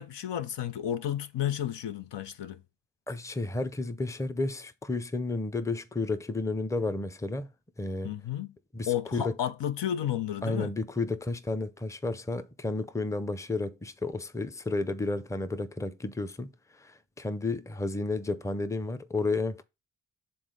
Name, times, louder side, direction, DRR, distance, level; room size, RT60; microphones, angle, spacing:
voice 1, 0.0-2.6 8.0-8.5 8.9-10.7, left 10 dB, 70° left, 0.6 m, -32 dB
voice 2, 3.1-7.5 7.8-8.1 8.7-9.3 10.4-19.6, left 3 dB, 5° left, 0.6 m, -32 dB
7.0 x 3.7 x 3.8 m
cardioid pair, 45°, 44 cm